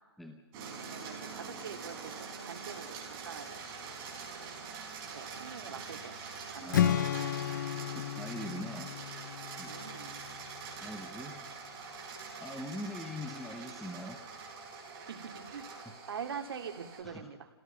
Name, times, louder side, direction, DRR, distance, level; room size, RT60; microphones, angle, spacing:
sound 1, 0.5-17.0, right 5 dB, 20° right, 4.4 m, -44 dB
voice 1, 0.7-3.6 4.4-4.5 5.1-6.1 6.5-7.4 7.7-7.9 9.6-10.2 15.1-15.7 16.1-17.5, right 6 dB, 65° right, 5 dB, 2.2 m, -44 dB
voice 2, 6.6-7.1 7.9-8.9 9.6-9.7 10.8-11.4 12.4-14.2 17.0-17.3, left 1 dB, ahead, 4 dB, 0.7 m, -42 dB
Strum, 6.7-10.8, left 10 dB, 45° left, 0.7 m, -33 dB
26.5 x 17.5 x 5.6 m, 1.3 s
hypercardioid pair, 170°, 14 cm